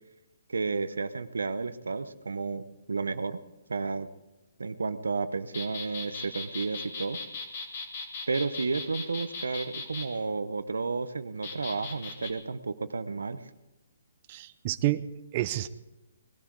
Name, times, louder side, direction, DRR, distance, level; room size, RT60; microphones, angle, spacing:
voice 1, 0.5-3.4 3.7-4.1 4.6-7.2 8.3-13.4, right 4 dB, 90° right, 13 dB, 0.8 m, -32 dB
sound 1, 5.5-10.1 11.4-12.3, left 4 dB, 50° left, 2.7 m, -38 dB
voice 2, 14.3-15.7, right 15 dB, 35° right, 11 dB, 0.6 m, -29 dB
20.0 x 12.0 x 4.7 m, 1.0 s
hypercardioid pair, 145°, 0 cm